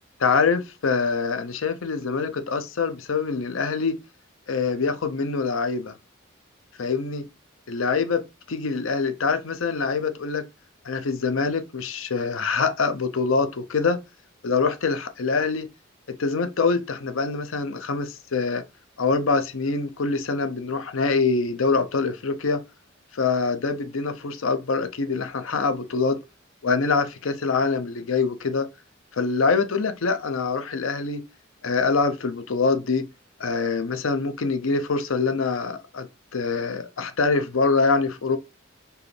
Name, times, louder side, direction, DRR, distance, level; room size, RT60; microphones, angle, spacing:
voice 1, 0.2-4.0 4.5-5.9 6.8-7.3 7.7-10.5 10.8-14.0 14.4-15.7 16.1-18.6 19.0-22.6 23.1-26.2 26.6-28.7 29.1-31.2 31.6-33.1 33.4-36.1 36.3-38.4, left 4 dB, 80° left, 0.7 m, -24 dB
4.6 x 3.3 x 3.2 m
head